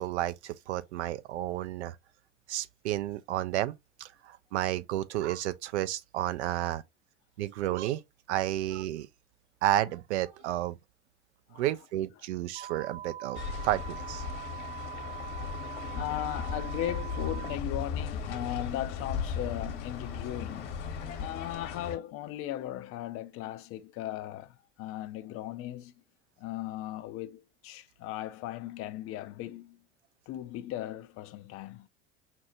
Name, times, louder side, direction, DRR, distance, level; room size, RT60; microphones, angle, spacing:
voice 1, 0.0-2.0 2.5-6.8 7.4-8.0 8.3-9.1 9.6-10.8 11.6-14.2, right 13 dB, 70° right, 0.5 m, -31 dB
sound 1, 12.6-17.6, right 10 dB, 25° right, 0.6 m, -42 dB
sound 2, 13.3-22.0, left 6 dB, 60° left, 0.8 m, -37 dB
voice 2, 14.7-15.3 15.9-20.8 21.2-25.9 26.4-29.8 30.3-31.9, left 13 dB, 40° left, 0.4 m, -37 dB
5.8 x 2.0 x 2.8 m
figure-of-eight pair, 70°, 35 cm